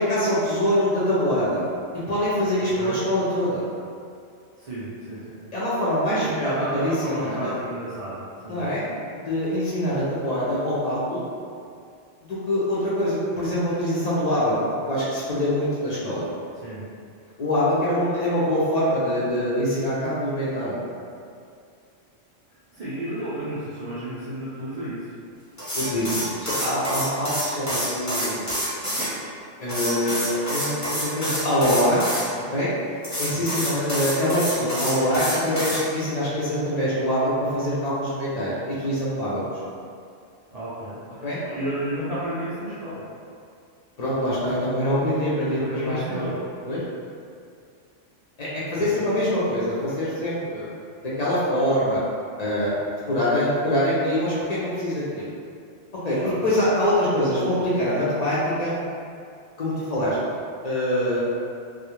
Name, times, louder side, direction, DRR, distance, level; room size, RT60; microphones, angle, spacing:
voice 1, 0.0-1.6 2.1-3.7 5.5-7.5 8.5-8.9 9.3-11.2 12.3-14.6 14.9-16.3 17.4-20.8 25.7-28.5 29.6-32.0 32.5-32.7 33.2-39.4 41.2-41.4 44.0-46.2 46.6-46.8 48.4-50.7 51.0-52.0 52.4-52.7 53.1-55.3 56.0-58.8 59.6-60.2 60.6-61.2, equal, 65° left, -9 dB, 0.4 m, -24 dB
voice 2, 4.6-5.4 6.1-8.8 16.6-16.8 22.7-25.1 33.3-33.5 40.5-43.0 45.4-46.3 48.7-49.1 56.2-56.4, right 1 dB, 70° right, -11 dB, 0.3 m, -32 dB
sound 1, 25.6-29.1 29.7-32.2 33.0-35.8, equal, 20° left, 0.6 m, -27 dB
2.2 x 2.0 x 2.9 m, 2.3 s
omnidirectional pair, 1.3 m